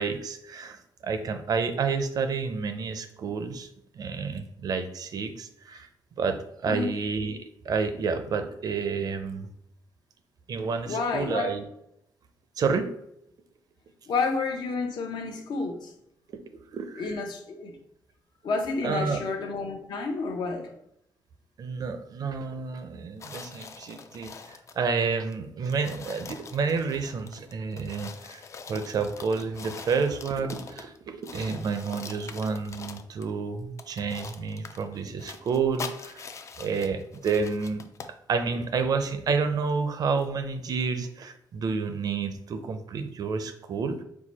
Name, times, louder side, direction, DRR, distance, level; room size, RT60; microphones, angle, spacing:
voice 1, 0.0-3.7 3.9-5.9 6.2-9.5 10.5-11.6 12.6-12.9 16.7-17.1 18.8-19.2 21.6-28.4 28.7-36.3 36.6-37.8 38.3-44.0, right 5 dB, 55° right, 8 dB, 0.5 m, -30 dB
voice 2, 10.8-11.5 14.1-15.9 17.0-17.8 18.4-20.7, left 4 dB, 70° left, 3 dB, 0.7 m, -30 dB
sound 1, 23.2-24.8 25.3-25.4 25.6-31.0 31.2-33.3 33.8-38.2, left 5 dB, 40° left, 0.3 m, -43 dB
4.6 x 2.2 x 4.1 m, 0.76 s
wide cardioid pair, 135°, 8 cm